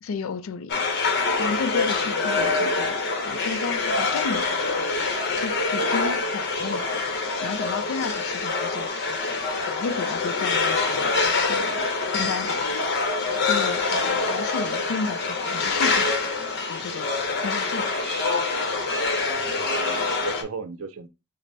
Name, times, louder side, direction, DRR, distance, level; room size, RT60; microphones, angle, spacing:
voice 1, 0.0-0.8 1.4-2.9 3.3-4.9 5.4-7.0 7.4-9.2 9.6-11.1 11.5-11.9 12.1-12.9 13.5-16.1 16.7-17.1 17.4-17.9, left 5 dB, 75° left, 0.4 m, -33 dB
sound 1, 0.7-20.4, left 3 dB, 50° left, 0.8 m, -25 dB
voice 2, 19.3-21.1, right 4 dB, 80° right, 0.6 m, -37 dB
5.2 x 2.0 x 2.7 m
head